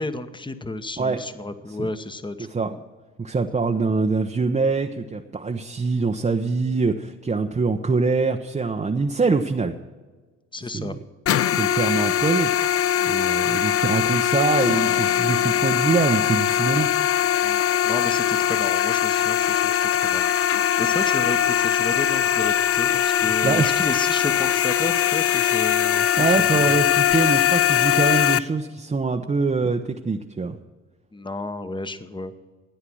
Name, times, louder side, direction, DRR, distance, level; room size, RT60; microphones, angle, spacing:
voice 1, 0.0-2.8 10.5-11.0 17.4-20.3 20.8-26.1 26.4-26.6 31.1-32.3, left 2 dB, 15° left, 10 dB, 1.1 m, -32 dB
voice 2, 2.4-2.7 3.2-9.7 10.6-11.0 11.6-12.5 13.0-16.9 22.9-23.9 26.2-30.6, right 4 dB, 20° right, 3 dB, 0.8 m, -24 dB
sound 1, 11.3-28.4, left 10 dB, 45° left, 0.5 m, -21 dB
Keyboard (musical), 14.6-20.6, left 10 dB, 85° left, 0.7 m, -42 dB
13.5 x 9.6 x 6.2 m, 1.3 s
hypercardioid pair, 55°, 33 cm